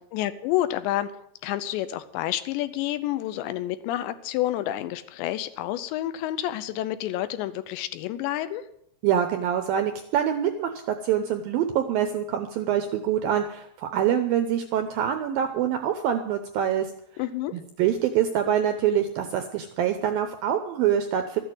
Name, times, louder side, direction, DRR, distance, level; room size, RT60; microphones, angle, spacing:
voice 1, 0.1-1.1 1.4-8.6 17.2-17.5, left 13 dB, 85° left, 12 dB, 3.1 m, -29 dB
voice 2, 9.0-16.9 17.5-21.4, right 9 dB, 80° right, 7 dB, 2.1 m, -25 dB
13.5 x 8.7 x 7.9 m, 0.73 s
omnidirectional pair, 5.1 m